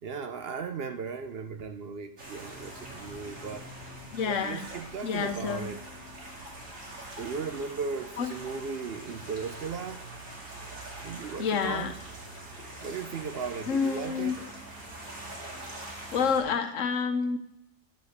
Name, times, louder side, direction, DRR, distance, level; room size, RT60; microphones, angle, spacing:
voice 1, 0.0-3.7 4.2-5.8 7.2-10.0 11.0-12.0 12.8-14.4, right 5 dB, 60° right, 8 dB, 0.8 m, -36 dB
sound 1, 2.2-16.4, right 1 dB, 80° right, 2.6 m, -43 dB
voice 2, 4.1-4.6 5.0-5.7 8.2-8.3 11.4-11.9 13.7-14.4 16.1-17.4, left 6 dB, 75° left, 7 dB, 1.2 m, -28 dB
10.0 x 5.1 x 6.5 m, 0.82 s
omnidirectional pair, 1.3 m